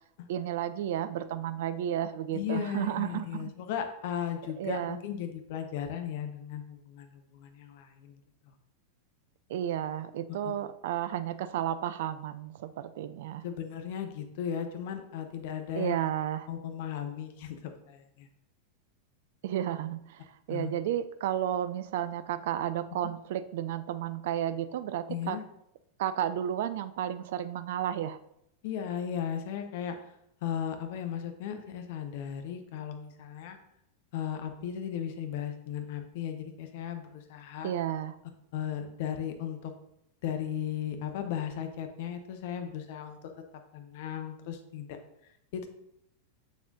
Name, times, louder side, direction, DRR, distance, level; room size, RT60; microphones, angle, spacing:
voice 1, 0.3-3.5 4.6-5.0 9.5-13.4 15.7-16.5 19.4-25.4 26.0-28.2 37.6-38.1, right 11 dB, 55° right, 13 dB, 0.4 m, -32 dB
voice 2, 2.3-8.2 8.4-8.5 13.4-16.0 16.5-18.3 20.5-20.7 25.1-25.4 28.6-30.0 30.4-33.6 34.1-37.7 38.5-39.7 40.2-43.2 43.7-44.9 45.5-45.7, left 9 dB, 50° left, 6 dB, 0.8 m, -36 dB
7.0 x 6.3 x 2.6 m, 0.78 s
figure-of-eight pair, 90°, 0 cm